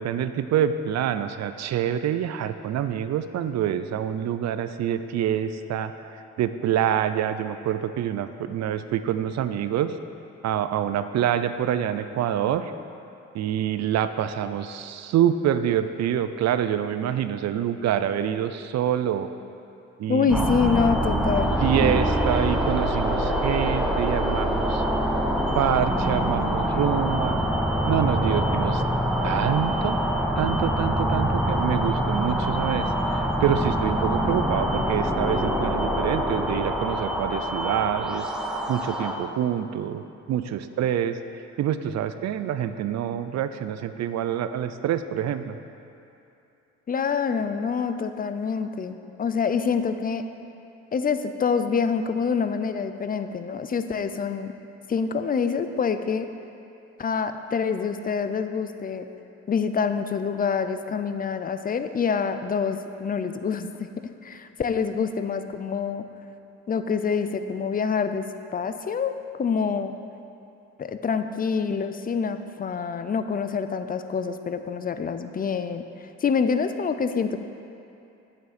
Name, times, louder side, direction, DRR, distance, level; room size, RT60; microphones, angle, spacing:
voice 1, 0.0-9.9 10.4-12.7 13.3-19.3 20.0-20.5 21.6-24.8 25.5-27.4 27.8-28.8 29.2-30.0 30.4-38.3 38.7-41.2 41.6-45.6, right 10 dB, 60° right, 11 dB, 0.5 m, -26 dB
voice 2, 20.1-22.1 46.9-50.2 50.9-54.5 54.9-56.3 57.0-59.0 59.5-63.9 64.2-66.0 66.7-69.9 70.8-77.4, left 6 dB, 30° left, 9 dB, 0.5 m, -26 dB
sound 1, 20.3-39.2, equal, ahead, 0.8 m, -25 dB
9.1 x 7.2 x 4.2 m, 2.7 s
cardioid pair, 90°, 30 cm